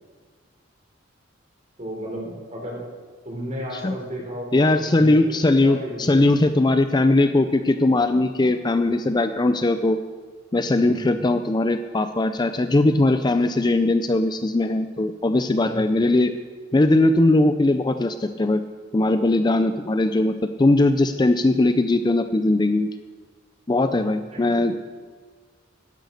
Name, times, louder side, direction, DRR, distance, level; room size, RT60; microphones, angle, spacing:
voice 1, 1.8-2.8 3.2-5.3 5.6-6.2 10.8-11.1 15.6-15.8 23.7-24.0 24.3-24.7, equal, 35° right, -1 dB, 4.0 m, -34 dB
voice 2, 4.5-10.0 10.5-16.3 16.7-18.6 18.9-22.9 23.7-24.8, left 2 dB, 20° left, 9 dB, 0.5 m, -20 dB
11.5 x 10.5 x 6.5 m, 1.5 s
head